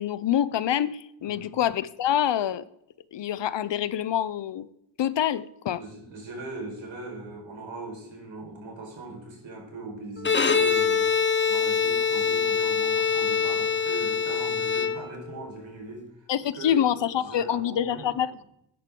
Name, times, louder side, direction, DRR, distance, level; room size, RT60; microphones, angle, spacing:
voice 1, 0.0-2.7 3.1-4.7 5.0-5.8 16.3-18.4, left 10 dB, 70° left, 17 dB, 0.7 m, -26 dB
voice 2, 1.2-1.6 5.8-11.1 11.5-16.3 16.5-16.8 17.1-18.1, right 2 dB, 80° right, 0 dB, 4.8 m, -40 dB
Bowed string instrument, 10.2-15.4, left 6 dB, 25° left, 0.9 m, -24 dB
13.5 x 10.0 x 3.8 m, 0.78 s
cardioid pair, 80°, 45 cm